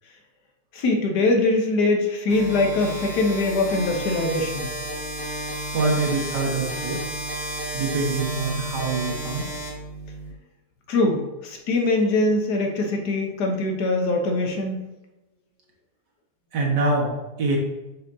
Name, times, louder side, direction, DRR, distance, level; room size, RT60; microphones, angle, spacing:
voice 1, 0.7-4.7 10.9-14.8, left 2 dB, 75° left, 3 dB, 1.5 m, -22 dB
sound 1, 2.3-10.3, right 1 dB, 15° right, 1.7 m, -32 dB
voice 2, 5.7-7.0 7.7-9.5 16.5-17.1 17.4-17.6, right 3 dB, 90° right, -2 dB, 2.0 m, -24 dB
6.5 x 5.8 x 2.7 m, 1.0 s
omnidirectional pair, 1.8 m